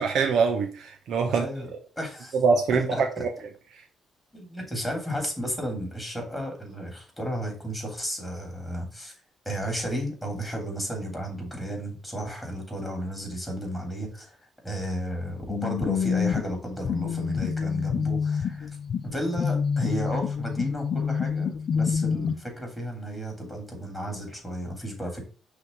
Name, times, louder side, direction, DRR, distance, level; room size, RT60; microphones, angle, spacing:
voice 1, 0.0-1.5 2.3-3.3, right 5 dB, 70° right, 0.9 m, -24 dB
voice 2, 1.3-1.7 2.0-2.4 2.9-3.2 4.3-9.1 9.4-14.4 14.6-18.7 19.0-25.2, equal, ahead, 3.1 m, -33 dB
sound 1, 15.5-22.3, left 6 dB, 60° left, 0.6 m, -27 dB
5.7 x 3.4 x 5.3 m
cardioid pair, 90°, 0 cm